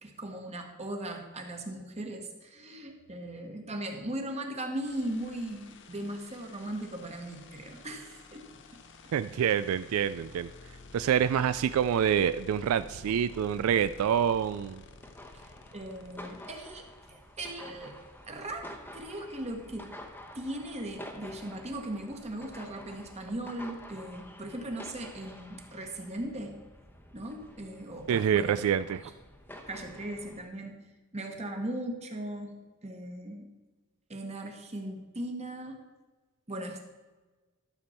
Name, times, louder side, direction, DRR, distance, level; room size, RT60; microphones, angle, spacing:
voice 1, 0.0-8.5 15.3-15.4 15.7-18.0 18.2-19.9 20.3-26.6 27.1-28.6 29.7-30.9 31.1-33.5 34.1-35.8 36.5-36.9, right 1 dB, 30° right, 3 dB, 1.4 m, -38 dB
sound 1, 4.8-17.1 19.2-19.3 19.5-23.9, left 3 dB, 60° left, 0.8 m, -52 dB
voice 2, 9.1-10.5 10.9-14.8 28.1-29.0, right 8 dB, 70° right, 14 dB, 0.3 m, -26 dB
sound 2, 12.5-30.5, left 1 dB, 10° left, 0.9 m, -50 dB
13.0 x 7.0 x 4.3 m, 1.3 s
head